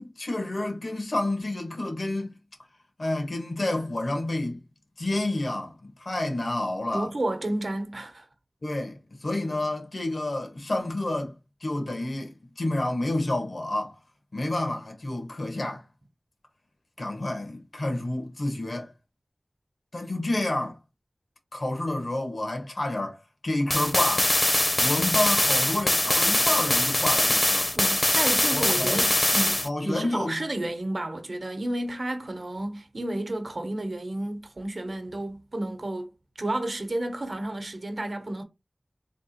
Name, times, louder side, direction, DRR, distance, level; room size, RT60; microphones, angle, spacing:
voice 1, 0.0-2.4 3.0-4.6 5.0-7.1 8.6-11.3 11.6-14.0 14.3-15.8 17.0-18.9 19.9-20.8 21.5-23.2 23.4-24.3 24.8-27.7 28.5-29.1 29.6-30.4, left 1 dB, 80° left, 1.3 m, -29 dB
voice 2, 6.9-8.2 27.8-36.1 36.4-38.4, right 1 dB, 75° right, 0.9 m, -31 dB
sound 1, 23.7-29.7, left 1 dB, 35° left, 0.6 m, -23 dB
3.5 x 2.4 x 4.1 m
wide cardioid pair, 40°, 0 cm